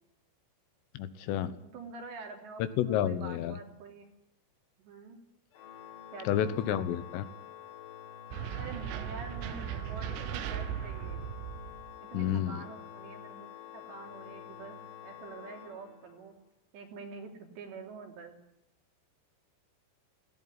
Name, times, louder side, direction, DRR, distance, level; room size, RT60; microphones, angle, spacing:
voice 1, 1.0-1.5 2.8-3.6 6.3-7.3 12.1-12.6, left 10 dB, 80° left, 13 dB, 3.6 m, -30 dB
voice 2, 1.6-4.1 4.8-5.2 6.1-6.6 8.6-11.2 12.0-13.5 13.7-16.3 16.7-18.4, right 4 dB, 60° right, 3 dB, 5.2 m, -46 dB
Organ, 5.5-16.4, left 10 dB, 55° left, 3.0 m, -48 dB
sound 1, 8.3-11.9, right 10 dB, 75° right, 3.5 m, -37 dB
18.5 x 16.5 x 9.8 m, 0.83 s
omnidirectional pair, 6.0 m